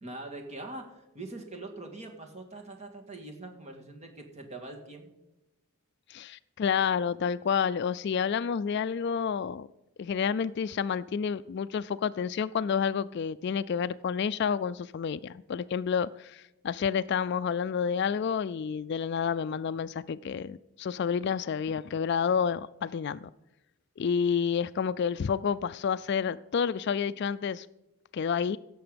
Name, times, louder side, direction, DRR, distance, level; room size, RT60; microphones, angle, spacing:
voice 1, 0.0-5.1, right 2 dB, 30° right, 1.9 m, -43 dB
voice 2, 6.1-9.7 10.0-23.3 24.0-27.7 28.1-28.6, left 6 dB, 50° left, 0.3 m, -29 dB
16.0 x 7.0 x 5.1 m
head